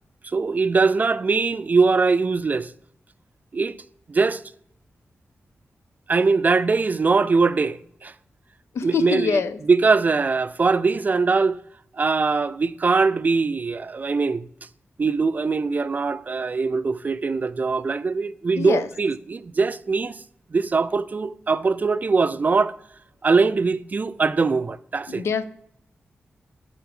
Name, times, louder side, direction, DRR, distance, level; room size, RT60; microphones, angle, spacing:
voice 1, 0.3-2.7 3.5-3.8 4.1-4.4 6.1-8.1 8.8-9.4 9.7-11.6 11.9-14.5 15.0-20.2 20.5-22.8 23.2-25.2, right 4 dB, 40° right, 0.3 m, -21 dB
voice 2, 8.7-9.6 18.6-18.9 25.1-25.4, left 6 dB, 90° left, 0.5 m, -24 dB
10.5 x 4.0 x 3.6 m
wide cardioid pair, 100°, 4 cm